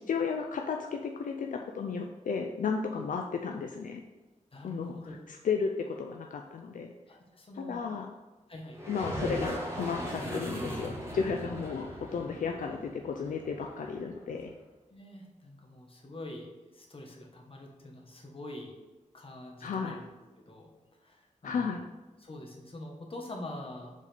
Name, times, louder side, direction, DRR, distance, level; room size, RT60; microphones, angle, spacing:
voice 1, 0.1-4.0 4.6-4.9 5.3-6.9 7.6-8.1 8.9-14.5 19.6-19.9 21.4-21.8, left 5 dB, 80° left, 3 dB, 0.5 m, -33 dB
voice 2, 4.5-5.2 7.1-7.8 8.5-8.8 14.9-16.5 16.7-18.7 19.1-20.1 20.4-20.7 21.0-21.9 22.2-23.9, left 1 dB, 45° left, 0 dB, 1.3 m, -45 dB
sound 1, 8.7-14.4, equal, 20° right, 1.7 m, -38 dB
5.2 x 4.1 x 5.1 m, 1.2 s
cardioid pair, 65°, 13 cm